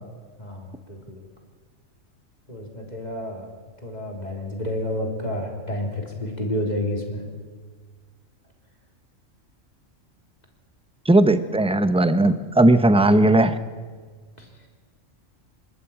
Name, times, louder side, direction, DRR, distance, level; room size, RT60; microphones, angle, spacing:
voice 1, 0.4-1.3 2.5-3.5 3.8-7.2 14.4-14.5, left 1 dB, 30° left, 1 dB, 3.5 m, -30 dB
voice 2, 11.0-13.6, right 1 dB, 5° right, 11 dB, 0.6 m, -17 dB
26.5 x 12.0 x 8.7 m, 1.5 s
omnidirectional pair, 1.4 m